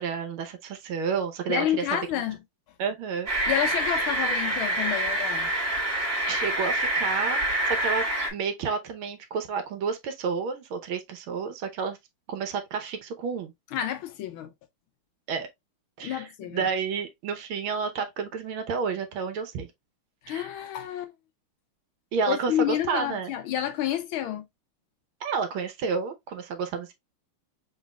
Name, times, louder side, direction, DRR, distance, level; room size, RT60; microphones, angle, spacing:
voice 1, 0.0-1.7 2.8-3.3 6.3-12.0 12.3-13.5 15.3-15.5 16.0-19.7 20.3-20.5 22.1-23.3 25.2-26.9, right 5 dB, 70° right, 1.7 m, -30 dB
voice 2, 1.5-2.4 3.5-5.5 13.7-14.5 16.0-16.7 20.2-21.1 22.3-24.4, left 11 dB, 75° left, 1.5 m, -29 dB
sound 1, 3.3-8.3, right 1 dB, 30° right, 1.7 m, -26 dB
5.3 x 4.0 x 2.3 m
omnidirectional pair, 2.4 m